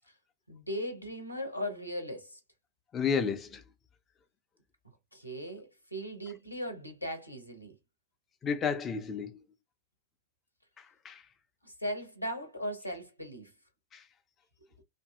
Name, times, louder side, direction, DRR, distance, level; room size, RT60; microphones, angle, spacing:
voice 1, 0.5-2.4 5.1-7.8 11.6-13.5 14.8-14.9, equal, 85° left, 0.8 m, -38 dB
voice 2, 2.9-3.6 8.4-9.4 10.8-11.2 13.9-14.0, left 6 dB, 25° left, 0.4 m, -32 dB
2.6 x 2.5 x 2.3 m
figure-of-eight pair, 90°, 0 cm